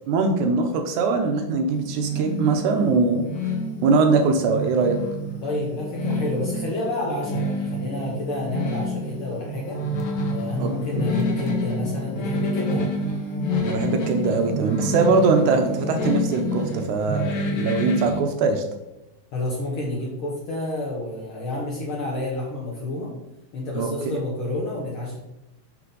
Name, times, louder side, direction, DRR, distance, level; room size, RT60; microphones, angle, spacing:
voice 1, 0.1-3.3 3.8-5.0 10.6-10.7 13.6-17.3 17.5-18.6 23.7-23.9, right 4 dB, 75° right, 5 dB, 1.9 m, -21 dB
sound 1, 1.7-18.2, equal, 65° left, 1.3 m, -28 dB
voice 2, 5.4-9.8 10.3-12.9 19.3-23.1 23.5-25.2, left 2 dB, 85° left, -3 dB, 1.1 m, -29 dB
5.9 x 5.8 x 3.8 m, 0.93 s
omnidirectional pair, 3.9 m